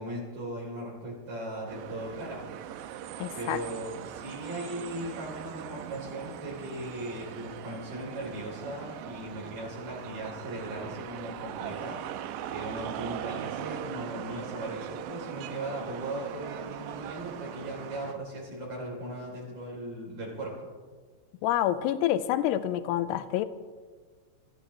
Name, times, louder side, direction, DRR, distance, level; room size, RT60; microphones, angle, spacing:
voice 1, 0.0-2.4 3.3-12.1 12.5-20.7, right 1 dB, 55° right, -5 dB, 4.8 m, -38 dB
sound 1, 1.7-18.1, right 10 dB, 85° right, 3.0 m, -40 dB
voice 2, 3.2-3.6 21.4-23.5, left 12 dB, 80° left, 12 dB, 2.7 m, -27 dB
26.0 x 14.5 x 3.1 m, 1.5 s
omnidirectional pair, 5.0 m